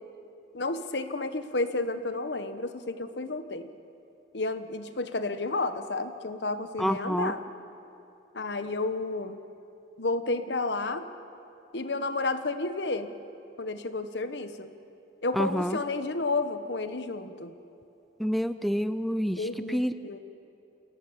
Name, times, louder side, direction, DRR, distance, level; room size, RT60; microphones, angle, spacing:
voice 1, 0.5-3.7 4.3-7.4 8.3-9.4 10.0-11.1 11.7-13.1 13.6-14.7 15.2-17.5 19.4-20.2, left 3 dB, 70° left, 10 dB, 1.2 m, -31 dB
voice 2, 6.8-7.3 15.4-15.8 18.2-19.4 19.7-19.9, equal, ahead, 11 dB, 0.5 m, -27 dB
27.5 x 17.0 x 7.3 m, 2.8 s
head